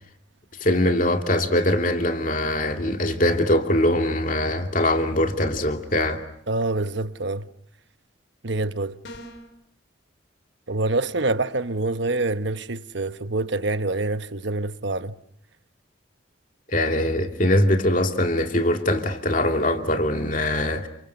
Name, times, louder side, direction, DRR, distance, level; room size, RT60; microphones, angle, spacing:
voice 1, 0.6-6.2 16.7-20.9, left 1 dB, 40° left, 2.6 m, -22 dB
voice 2, 6.5-7.5 8.4-9.0 10.7-15.2, right 2 dB, 65° right, 1.1 m, -26 dB
sound 1, 9.0-9.6, equal, 65° left, 3.4 m, -41 dB
30.0 x 28.0 x 6.9 m
head